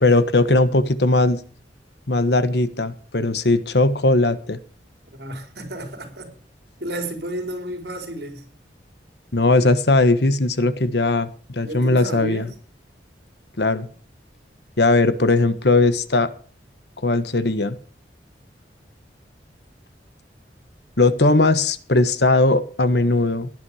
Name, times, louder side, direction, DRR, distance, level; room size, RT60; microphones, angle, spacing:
voice 1, 0.0-1.4 2.1-4.6 9.3-12.4 13.6-13.9 14.8-16.3 17.0-17.8 21.0-23.5, left 2 dB, 65° left, 1.3 m, -18 dB
voice 2, 5.1-6.3 6.8-8.5 11.6-12.5, right 1 dB, 60° right, 4.4 m, -31 dB
17.5 x 11.0 x 4.9 m
head